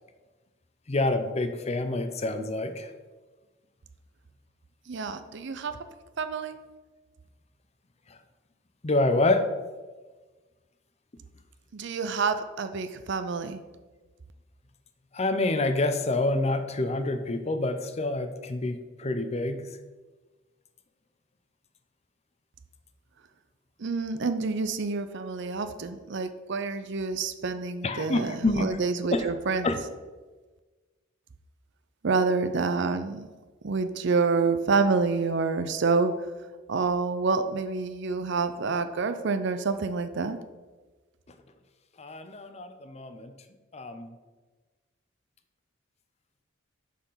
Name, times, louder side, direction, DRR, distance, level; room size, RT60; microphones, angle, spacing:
voice 1, 0.9-2.9 8.1-8.2 8.8-9.5 15.1-19.8 27.8-28.8 29.1-29.3 29.6-29.7 42.0-43.3 43.7-44.1, left 2 dB, 30° left, 8 dB, 0.6 m, -27 dB
voice 2, 4.9-5.7 6.2-6.6 11.7-13.6 23.8-29.7 32.0-33.3 33.6-36.1 36.7-40.4, right 4 dB, 60° right, 10 dB, 0.6 m, -28 dB
6.6 x 5.8 x 5.5 m, 1.3 s
head